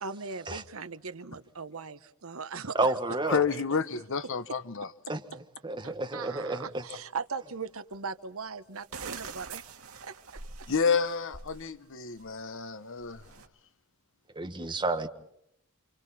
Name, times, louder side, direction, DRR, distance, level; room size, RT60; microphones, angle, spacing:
voice 1, 0.0-3.0 5.8-9.6 10.0-10.1, right 5 dB, 70° right, 1.1 m, -39 dB
voice 2, 2.7-3.4 5.1-5.2 5.6-6.8 14.3-15.1, right 2 dB, 20° right, 1.6 m, -30 dB
voice 3, 3.3-4.9 10.7-13.3, left 5 dB, 60° left, 1.0 m, -29 dB
sound 1, 5.9-6.0 7.9-8.0 8.7-11.6 12.0-12.3 13.0-13.5, right 5 dB, 90° right, 2.1 m, -44 dB
29.0 x 27.0 x 4.2 m
head